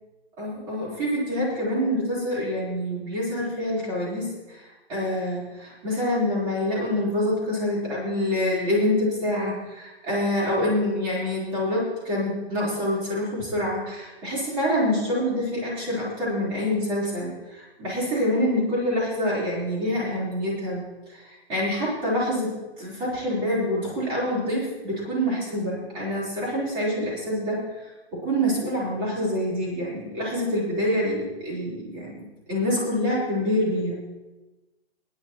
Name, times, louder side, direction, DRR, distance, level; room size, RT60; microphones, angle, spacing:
voice 1, 0.4-4.6 4.9-20.8 21.1-32.2 32.5-33.9, left 1 dB, 15° right, -6 dB, 4.3 m, -26 dB
22.5 x 10.5 x 3.1 m, 1.1 s
hypercardioid pair, 170°, 32 cm